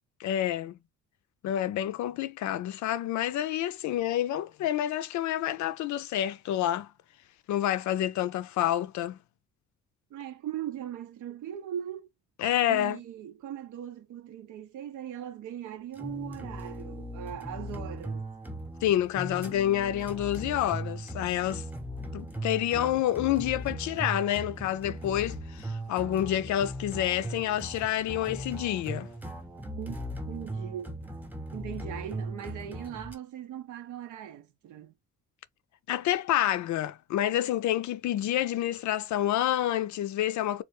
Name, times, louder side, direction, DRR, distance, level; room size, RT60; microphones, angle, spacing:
voice 1, 0.2-0.7 1.4-6.9 7.5-9.2 12.4-13.0 18.8-21.6 22.1-29.1 35.9-40.6, left 12 dB, 70° left, 0.5 m, -28 dB
voice 2, 10.1-12.1 12.6-18.3 29.7-30.0 30.3-31.0 31.5-34.9, right 10 dB, 75° right, 0.6 m, -39 dB
sound 1, 15.9-33.2, right 1 dB, 5° right, 0.8 m, -38 dB
3.2 x 2.4 x 3.2 m
cardioid pair, 90°, 30 cm